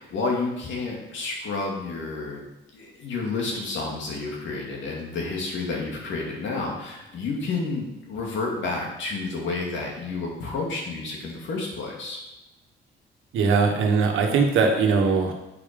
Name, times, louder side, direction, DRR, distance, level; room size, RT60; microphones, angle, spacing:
voice 1, 0.0-2.4 2.7-12.2, left 3 dB, 70° left, -1 dB, 2.6 m, -30 dB
voice 2, 13.3-15.3, right 4 dB, 85° right, 3 dB, 1.5 m, -20 dB
8.3 x 5.4 x 5.3 m, 0.97 s
cardioid pair, 90°, 20 cm